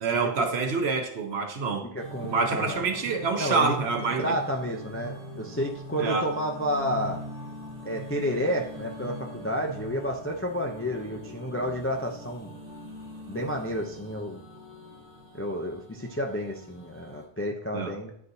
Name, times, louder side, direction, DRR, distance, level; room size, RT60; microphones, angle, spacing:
voice 1, 0.0-1.9 2.2-4.3 6.0-6.3 17.7-17.9, right 4 dB, 70° right, 4 dB, 1.0 m, -27 dB
voice 2, 1.9-2.9 3.4-3.8 4.2-7.2 7.8-12.5 13.3-14.4 15.3-18.1, equal, 25° left, 0 dB, 0.3 m, -30 dB
sound 1, 2.0-17.3, equal, 50° right, 1.3 m, -42 dB
9.8 x 4.0 x 2.6 m, 0.68 s
omnidirectional pair, 1.1 m